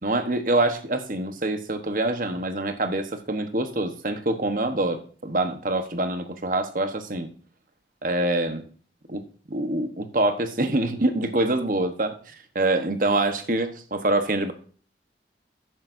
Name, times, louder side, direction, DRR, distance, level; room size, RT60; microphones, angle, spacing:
voice 1, 0.0-7.3 8.0-8.6 9.1-14.5, right 2 dB, 50° right, 8 dB, 1.1 m, -25 dB
12.0 x 9.5 x 2.7 m, 0.43 s
head